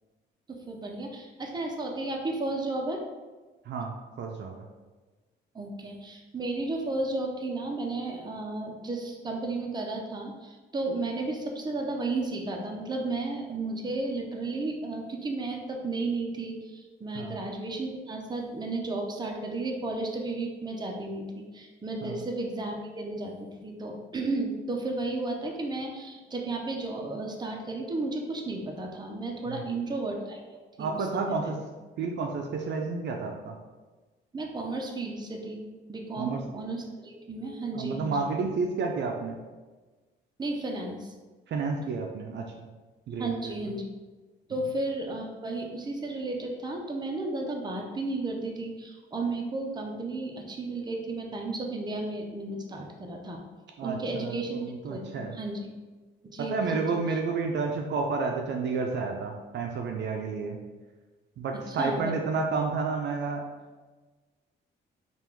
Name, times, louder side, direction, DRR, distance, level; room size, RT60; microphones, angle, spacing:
voice 1, 0.5-3.0 5.5-30.4 30.8-31.5 34.3-35.6 35.9-38.3 40.4-41.1 43.2-43.9 44.5-53.4 53.8-55.7 56.3-57.2 61.7-62.1, right 2 dB, 20° right, 1 dB, 0.7 m, -33 dB
voice 2, 3.7-4.6 17.1-17.4 22.0-22.2 29.5-29.8 30.8-31.6 32.0-33.6 36.2-36.4 37.7-39.4 41.5-42.7 43.1-43.5 53.8-55.4 56.4-60.6 61.4-63.4, right 4 dB, 60° right, 2 dB, 0.5 m, -31 dB
3.4 x 2.5 x 4.5 m, 1.3 s
cardioid pair, 90°, 20 cm